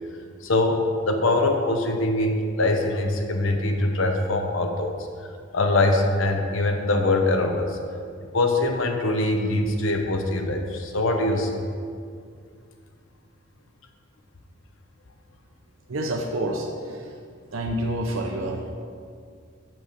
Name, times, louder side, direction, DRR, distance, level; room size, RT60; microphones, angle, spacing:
voice 1, 0.4-5.1 5.5-7.8 8.3-11.7, left 2 dB, 75° left, 4 dB, 0.8 m, -23 dB
voice 2, 15.9-17.0 17.5-18.7, right 1 dB, 80° right, 1 dB, 0.7 m, -28 dB
6.1 x 6.0 x 6.6 m, 2.2 s
head